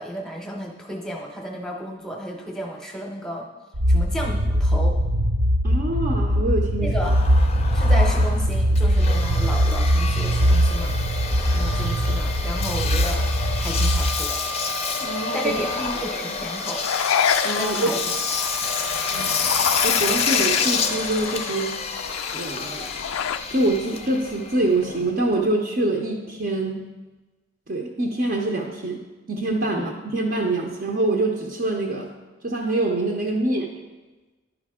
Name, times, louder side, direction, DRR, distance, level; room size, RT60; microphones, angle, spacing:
voice 1, 0.0-3.5 3.9-5.0 6.8-7.1 7.7-11.0 11.5-13.3 13.6-14.4 15.3-15.7 16.0-16.8 17.6-18.0 29.7-29.9, equal, 5° left, 1 dB, 0.8 m, -32 dB
sound 1, 3.7-14.2, equal, 75° right, 0.7 m, -21 dB
voice 2, 5.6-7.1 15.0-16.0 17.4-17.9 19.1-19.4 19.8-21.7 22.3-22.9 23.5-26.8 27.7-32.1 32.4-33.7, right 2 dB, 45° right, -1 dB, 0.7 m, -25 dB
Engine, 7.0-25.4, left 4 dB, 30° left, 0.5 m, -28 dB
sound 2, 16.8-23.4, left 8 dB, 85° left, 0.4 m, -27 dB
10.5 x 5.2 x 3.6 m, 1.2 s
head